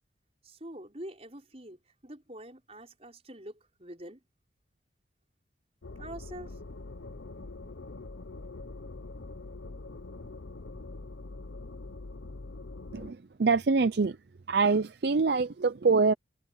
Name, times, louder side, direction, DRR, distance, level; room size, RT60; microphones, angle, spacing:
voice 1, 0.4-4.2 6.0-6.6, right 1 dB, 30° right, 5.3 m, -45 dB
sound 1, 5.8-13.1, left 2 dB, 80° left, 0.9 m, -43 dB
voice 2, 12.9-14.2 14.5-16.1, right 4 dB, 55° right, 0.5 m, -25 dB
head